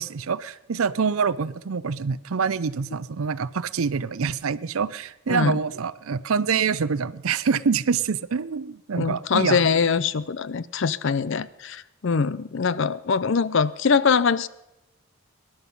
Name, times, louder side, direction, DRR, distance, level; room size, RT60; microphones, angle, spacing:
voice 1, 0.0-9.6, right 5 dB, 75° right, 18 dB, 0.5 m, -26 dB
voice 2, 5.3-5.6 8.9-14.5, left 5 dB, 55° left, 18 dB, 0.5 m, -23 dB
19.0 x 11.0 x 5.4 m, 0.91 s
head